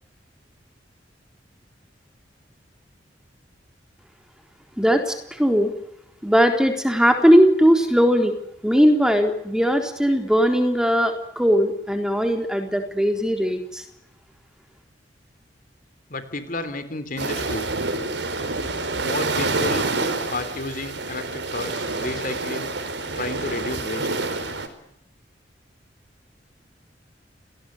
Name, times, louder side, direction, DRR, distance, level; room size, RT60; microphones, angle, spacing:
voice 1, 4.8-5.7 6.2-8.3 8.6-13.8, equal, 5° right, 5 dB, 3.9 m, -19 dB
voice 2, 16.1-17.6 19.0-19.9 20.3-22.7 23.1-24.1, left 2 dB, 50° left, 11 dB, 3.3 m, -31 dB
sound 1, 17.2-24.7, right 3 dB, 75° right, 4.7 m, -27 dB
28.5 x 20.0 x 9.7 m, 0.77 s
head